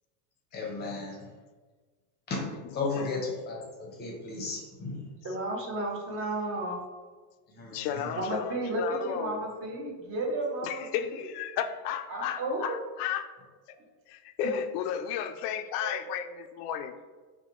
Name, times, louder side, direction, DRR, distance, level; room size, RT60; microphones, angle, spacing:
voice 1, 0.5-1.3 2.3-5.1 7.5-7.9, left 3 dB, 20° left, -1 dB, 0.7 m, -35 dB
voice 2, 2.7-3.1 7.7-9.5 10.6-13.3 14.1-16.9, left 9 dB, 80° left, 9 dB, 0.5 m, -34 dB
voice 3, 5.2-6.8 8.2-11.1 12.1-12.7 15.8-16.2, right 2 dB, 30° right, 0 dB, 0.7 m, -33 dB
5.6 x 2.2 x 3.0 m, 1.4 s
cardioid pair, 160°, 46 cm